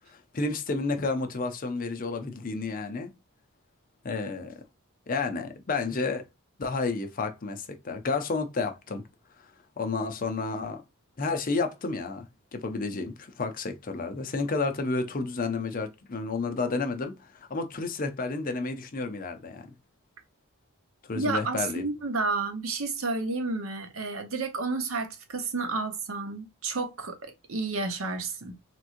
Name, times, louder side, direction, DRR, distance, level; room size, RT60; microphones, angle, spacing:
voice 1, 0.1-3.1 4.0-4.6 5.1-6.2 6.6-9.0 9.4-9.5 9.8-10.8 11.2-12.3 12.5-19.7 21.0-21.8, left 3 dB, 40° left, 0.6 m, -31 dB
voice 2, 21.1-28.6, right 3 dB, 70° right, 0.9 m, -31 dB
3.5 x 3.0 x 2.5 m
head